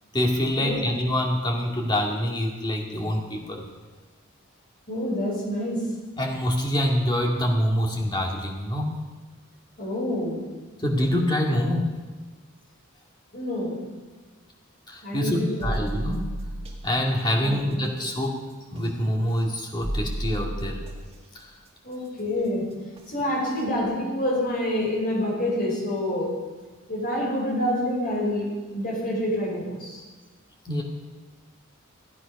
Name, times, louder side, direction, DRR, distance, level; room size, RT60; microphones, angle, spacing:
voice 1, 0.1-3.6 6.2-9.0 10.8-11.9 14.9-16.3 16.8-18.5 18.7-20.8 21.3-21.5 30.6-30.8, equal, 20° left, -1 dB, 2.2 m, -25 dB
voice 2, 4.9-5.8 9.8-10.4 13.3-13.8 15.0-15.8 17.4-17.9 21.8-22.6 23.1-26.3 26.9-28.5 28.7-30.0, left 1 dB, 45° left, -3 dB, 5.1 m, -27 dB
sound 1, 15.6-16.9 18.7-18.9 19.8-21.1 23.0-23.1 23.6-23.7, right 1 dB, 30° right, 1.8 m, -31 dB
15.5 x 9.8 x 5.4 m, 1.3 s
head